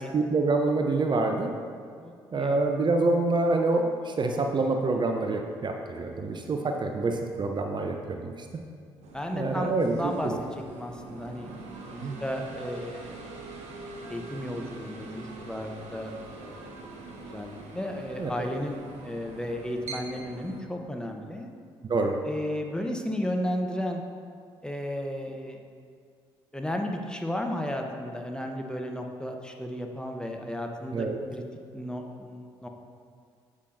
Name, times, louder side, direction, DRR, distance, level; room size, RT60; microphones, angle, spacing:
voice 1, 0.1-1.5 2.3-8.3 9.3-10.4 12.0-12.1 18.2-18.4 21.9-22.1 30.9-31.2, right 3 dB, 35° right, 3 dB, 0.6 m, -26 dB
voice 2, 2.0-2.6 9.1-11.5 11.9-13.2 14.1-16.7 17.0-21.5 22.2-24.0 24.6-25.6 26.5-31.1 31.3-31.4 31.7-32.7, left 1 dB, 5° left, 3 dB, 0.8 m, -34 dB
sound 1, 9.0-20.6, right 2 dB, 60° right, 0.9 m, -43 dB
8.1 x 7.5 x 2.6 m, 2.2 s
hypercardioid pair, 45°, 13 cm